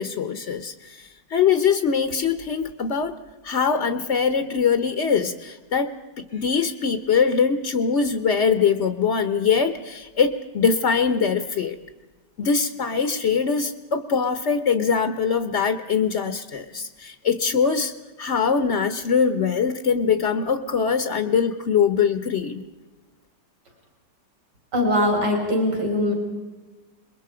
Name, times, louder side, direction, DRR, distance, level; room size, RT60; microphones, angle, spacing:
voice 1, 0.0-3.2 3.4-11.8 12.4-17.9 18.2-22.6, left 6 dB, 45° left, 9 dB, 1.1 m, -22 dB
voice 2, 24.7-26.1, left 1 dB, 70° right, 1 dB, 5.8 m, -21 dB
28.0 x 22.5 x 5.0 m, 1.2 s
omnidirectional pair, 1.9 m